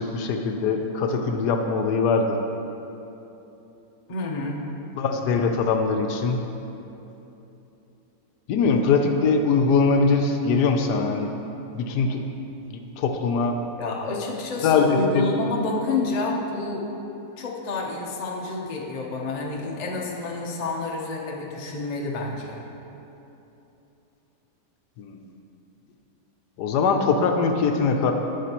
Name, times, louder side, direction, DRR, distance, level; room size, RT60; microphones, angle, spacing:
voice 1, 0.0-2.4 4.9-6.4 8.5-11.3 11.7-12.2 12.7-13.6 14.6-15.2 25.0-25.2 26.6-28.1, left 4 dB, 75° left, 4 dB, 1.1 m, -22 dB
voice 2, 4.1-4.6 13.8-16.9 17.4-22.6, left 3 dB, 40° left, -1 dB, 0.6 m, -29 dB
9.6 x 8.0 x 2.9 m, 3.0 s
omnidirectional pair, 1.8 m